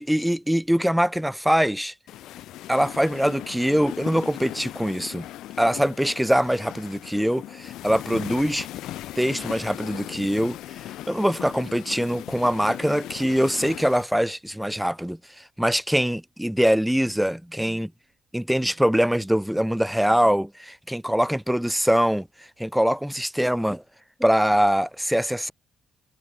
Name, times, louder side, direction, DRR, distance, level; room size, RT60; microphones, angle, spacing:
voice 1, 0.0-1.9 2.7-5.3 5.6-8.7 9.2-10.6 11.1-17.9 18.3-23.8 24.2-25.5, equal, ahead, 2.0 m, -23 dB
sound 1, 2.1-14.0, left 14 dB, 85° left, 3.2 m, -38 dB
cardioid pair, 90°, 0 cm